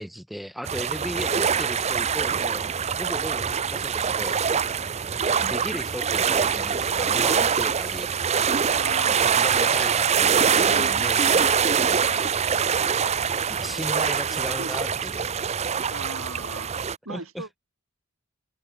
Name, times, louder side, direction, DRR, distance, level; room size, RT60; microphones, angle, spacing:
voice 1, 0.0-2.7 2.9-4.4 5.2-8.2 9.0-12.0 13.5-15.3 17.1-17.5, equal, ahead, 3.6 m, -36 dB
sound 1, 0.7-17.0, right 7 dB, 30° right, 0.6 m, -24 dB
voice 2, 8.7-9.7 10.7-11.7 13.4-14.7 15.9-16.7 17.1-17.5, right 2 dB, 70° right, 5.4 m, -39 dB
head